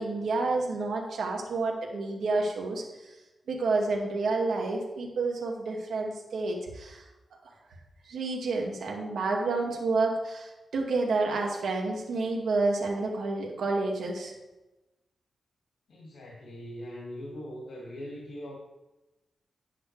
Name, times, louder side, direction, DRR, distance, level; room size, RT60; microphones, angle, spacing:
voice 1, 0.0-3.1 3.5-7.0 8.1-14.3, right 3 dB, 85° right, 0 dB, 2.0 m, -29 dB
voice 2, 15.9-18.6, equal, 85° left, -4 dB, 2.1 m, -41 dB
10.0 x 9.4 x 3.3 m, 1.0 s
cardioid pair, 90°, 0 cm